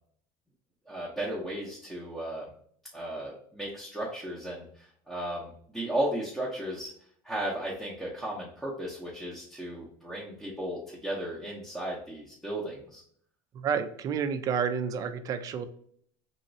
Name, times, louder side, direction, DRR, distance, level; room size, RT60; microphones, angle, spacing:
voice 1, 0.9-2.5 2.9-6.9 7.2-13.0, right 1 dB, ahead, -6 dB, 0.7 m, -35 dB
voice 2, 13.5-15.7, right 7 dB, 35° right, 10 dB, 0.4 m, -30 dB
3.0 x 2.8 x 2.6 m, 0.62 s
cardioid pair, 140°, 11 cm